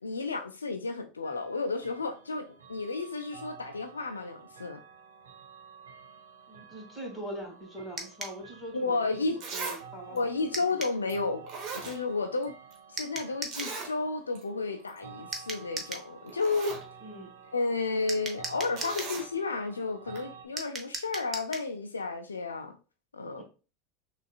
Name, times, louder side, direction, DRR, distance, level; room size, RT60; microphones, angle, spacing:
voice 1, 0.0-4.8 8.7-9.4 10.1-11.5 11.8-12.5 12.9-16.8 17.5-22.8 23.1-23.4, left 3 dB, 85° left, 0.4 m, -32 dB
sound 1, 1.2-20.5, right 6 dB, 75° right, 0.7 m, -51 dB
voice 2, 6.5-10.2 17.0-17.3 23.3-23.4, right 1 dB, 10° left, 2.1 m, -42 dB
sound 2, 8.0-8.4 10.5-11.0 13.0-13.8 15.3-16.1 18.1-19.2 20.6-21.7, right 2 dB, 20° right, 0.9 m, -38 dB
Zipper (clothing), 8.9-9.0 9.4-9.8 10.2-10.3 11.1-11.2 11.5-12.4 12.7-12.8 13.5-13.9 14.4-14.5 14.8-15.0 15.9-16.0 16.3-16.8 18.8-19.3 20.2-20.3, right 4 dB, 45° right, 1.3 m, -38 dB
6.1 x 2.4 x 2.3 m
figure-of-eight pair, 80°, 0 cm